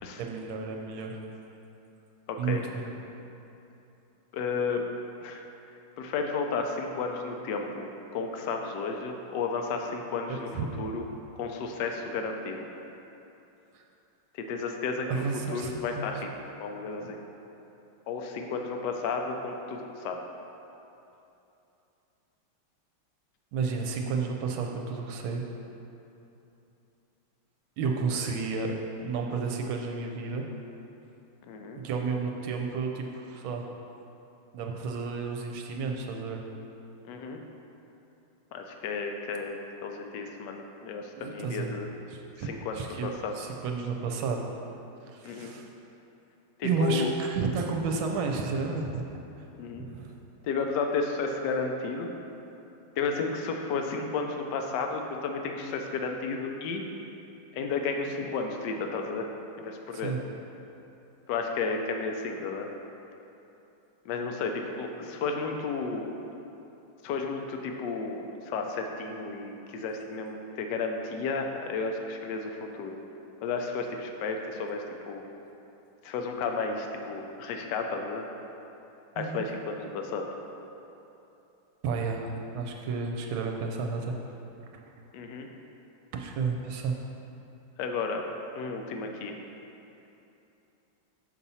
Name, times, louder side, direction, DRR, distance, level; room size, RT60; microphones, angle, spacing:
voice 1, 0.2-1.2 2.4-2.9 10.3-10.4 13.7-13.8 15.1-16.1 23.5-25.5 27.8-28.7 29.0-30.5 31.8-33.7 34.5-36.4 41.2-41.8 42.1-43.1 43.3-44.4 45.1-45.6 46.6-49.0 49.8-50.1 60.0-60.2 79.2-79.4 81.8-84.1 86.1-87.0, right 4 dB, 75° right, 2 dB, 1.4 m, -31 dB
voice 2, 2.3-2.6 4.3-4.8 5.2-5.4 6.0-11.0 11.4-12.6 14.5-16.3 16.6-17.2 18.1-20.2 31.5-31.8 37.0-37.4 38.5-41.9 42.4-43.4 45.2-45.6 46.6-47.1 49.6-49.9 50.4-52.1 53.0-56.8 57.5-59.3 59.6-60.1 61.3-62.7 64.0-66.1 67.0-73.0 73.4-75.2 76.0-78.2 79.2-80.3 85.1-85.5 87.8-88.2 88.6-89.3, left 4 dB, 70° left, 3 dB, 1.1 m, -32 dB
7.3 x 4.1 x 5.5 m, 2.9 s
omnidirectional pair, 2.3 m